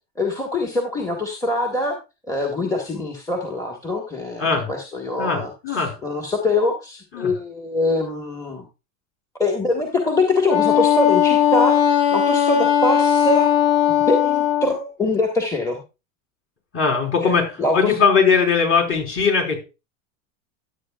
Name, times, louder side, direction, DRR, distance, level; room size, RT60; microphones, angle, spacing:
voice 1, 0.2-2.0 2.3-8.7 9.4-11.8 12.1-13.5 13.9-15.8 17.2-17.3 17.6-17.9, left 2 dB, 10° left, 2 dB, 1.6 m, -23 dB
voice 2, 4.4-4.7 5.2-6.0 7.1-7.3 16.7-19.6, left 5 dB, 35° left, 2 dB, 4.2 m, -20 dB
Wind instrument woodwind instrument, 10.5-14.7, left 9 dB, 50° left, 1.8 m, -18 dB
13.0 x 8.2 x 2.4 m, 0.28 s
supercardioid pair, 120°, 38 cm